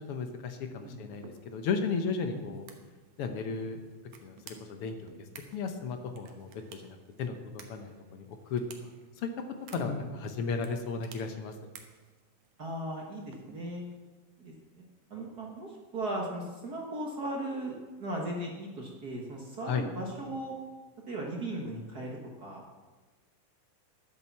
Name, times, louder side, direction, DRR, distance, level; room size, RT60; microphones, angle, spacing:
voice 1, 0.1-2.6 3.2-3.8 4.2-5.1 5.5-8.6 9.2-9.3 9.7-11.5 19.7-19.8, left 5 dB, 70° left, 6 dB, 1.4 m, -35 dB
sound 1, 1.1-14.0, right 6 dB, 75° right, 2.5 m, -56 dB
voice 2, 9.7-10.1 12.6-13.8 14.4-14.8 15.1-20.5 21.1-22.6, right 1 dB, 45° right, -1 dB, 1.4 m, -37 dB
11.0 x 8.9 x 7.3 m, 1.3 s
omnidirectional pair, 3.5 m